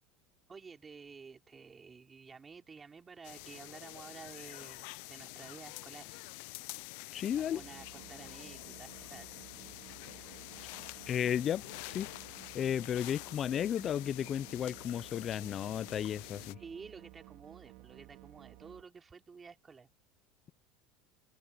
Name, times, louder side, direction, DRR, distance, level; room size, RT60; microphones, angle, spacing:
voice 1, 0.5-6.3 6.9-9.3 10.0-10.4 16.6-19.9, right 5 dB, 25° right, 4.0 m, -52 dB
sound 1, 3.2-16.6, left 25 dB, 70° left, 0.7 m, -47 dB
voice 2, 7.1-7.6 11.1-12.1 12.5-16.6, left 9 dB, 40° left, 0.8 m, -34 dB
sound 2, 7.3-18.8, right 23 dB, 65° right, 2.8 m, -55 dB
supercardioid pair, 100°, 0 cm